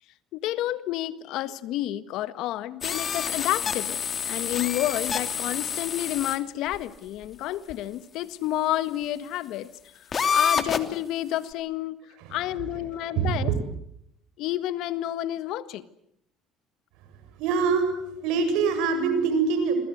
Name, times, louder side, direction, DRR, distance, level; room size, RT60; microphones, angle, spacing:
voice 1, 0.3-4.0 4.3-9.7 10.3-12.0 12.3-13.5 14.4-15.9 18.0-18.3, left 14 dB, 70° left, 14 dB, 1.6 m, -30 dB
sound 1, 2.8-6.4 6.7-6.8 7.7-7.8 10.1-11.0, left 7 dB, 40° left, 3.0 m, -28 dB
voice 2, 13.1-13.6 17.4-17.9 18.2-19.7, right 5 dB, 75° right, 7 dB, 7.8 m, -24 dB
28.5 x 22.0 x 8.1 m, 0.73 s
supercardioid pair, 85°, 0 cm